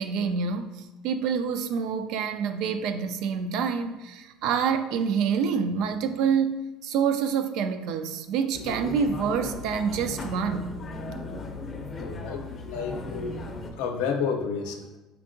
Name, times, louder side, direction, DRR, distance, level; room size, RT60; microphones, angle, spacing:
voice 1, 0.0-6.5 6.8-10.7, right 6 dB, 70° right, 9 dB, 0.3 m, -27 dB
sound 1, 8.5-13.7, left 2 dB, 25° left, 0.5 m, -37 dB
voice 2, 12.0-13.4 13.8-15.0, left 6 dB, 90° left, 4 dB, 0.5 m, -31 dB
4.5 x 3.5 x 2.6 m, 1.1 s
cardioid pair, 130°, 0 cm